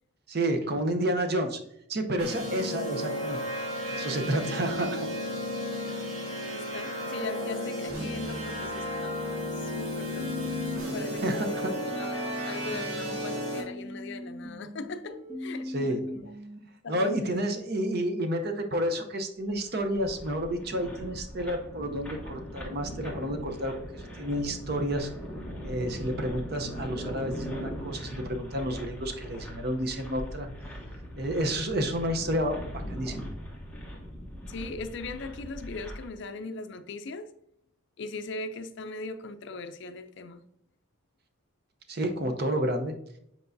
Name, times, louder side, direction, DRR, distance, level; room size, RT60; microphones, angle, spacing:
voice 1, 0.3-1.6 1.9-3.4 3.9-5.1 5.9-6.1 11.2-11.8 15.7-16.0 16.9-25.1 25.6-30.5 31.2-33.3 41.9-42.9, right 1 dB, 50° right, 0.7 m, -30 dB
sound 1, 2.2-13.6, left 1 dB, 85° right, 1.8 m, -33 dB
voice 2, 6.5-9.2 9.5-10.6 10.9-16.3 16.8-17.4 34.5-37.3 38.0-40.4, left 3 dB, 55° left, 0.4 m, -39 dB
sound 2, 10.2-13.2 13.6-16.6, left 1 dB, 25° right, 1.7 m, -39 dB
sound 3, 19.4-36.1, equal, 5° left, 1.0 m, -40 dB
8.0 x 4.6 x 2.6 m
head